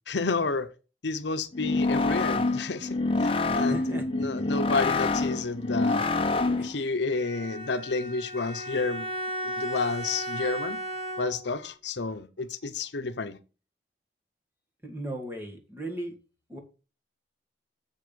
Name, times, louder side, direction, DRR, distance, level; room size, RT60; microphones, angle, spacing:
voice 1, 0.1-0.7 1.0-6.1 6.6-9.1 9.4-10.8 11.2-13.4, left 4 dB, 80° left, 0.8 m, -30 dB
sound 1, 1.5-6.8, left 3 dB, 30° left, 0.8 m, -26 dB
voice 2, 3.5-4.3 6.6-6.7 14.8-16.2 16.5-16.6, right 1 dB, 10° right, 1.9 m, -37 dB
Bowed string instrument, 7.1-11.6, equal, 35° right, 5.6 m, -35 dB
7.7 x 6.6 x 5.1 m
head